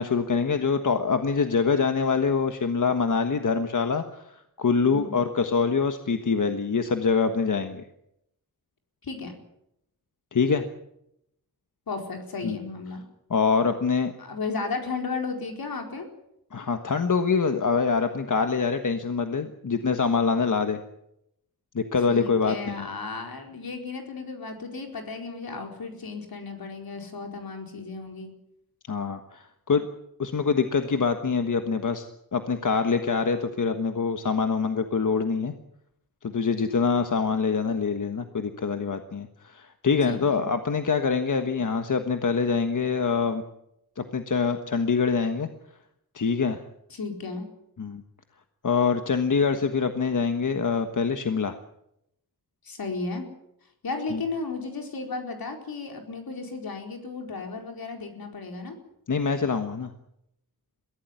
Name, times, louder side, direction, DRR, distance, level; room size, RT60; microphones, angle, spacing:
voice 1, 0.0-7.8 10.3-10.6 12.4-12.6 13.3-14.1 16.5-20.8 21.7-22.7 28.9-29.9 30.2-32.1 32.3-35.5 36.2-43.4 44.0-45.5 46.1-46.6 47.8-48.0 48.6-51.6 54.1-54.2 59.1-59.9, left 5 dB, 60° left, 7 dB, 1.4 m, -25 dB
voice 2, 9.0-9.3 11.9-13.0 14.2-16.1 22.1-28.3 40.0-40.5 46.9-47.5 52.6-53.3 53.8-58.8, left 4 dB, 80° left, 3 dB, 4.6 m, -34 dB
22.5 x 16.5 x 9.5 m, 0.81 s
wide cardioid pair, 120°, 35 cm